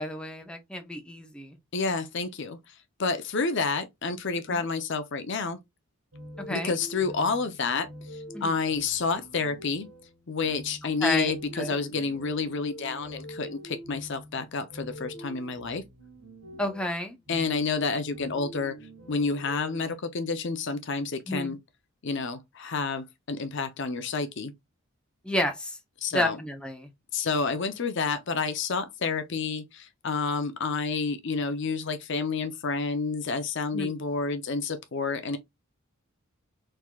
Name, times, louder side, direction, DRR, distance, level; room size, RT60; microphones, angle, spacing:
voice 1, 0.0-1.6 4.5-4.6 6.4-6.8 8.3-8.5 11.0-11.8 16.6-17.2 21.3-21.6 25.2-25.8 26.1-26.9 33.7-33.9, left 1 dB, 5° left, 0.7 m, -31 dB
voice 2, 1.7-5.6 6.5-9.9 10.3-15.8 17.3-18.8 19.1-21.6 22.0-24.5 26.0-26.4 27.1-35.4, left 4 dB, 55° left, 0.6 m, -29 dB
sound 1, 6.1-19.8, equal, 70° right, 2.2 m, -45 dB
4.6 x 3.7 x 2.3 m
head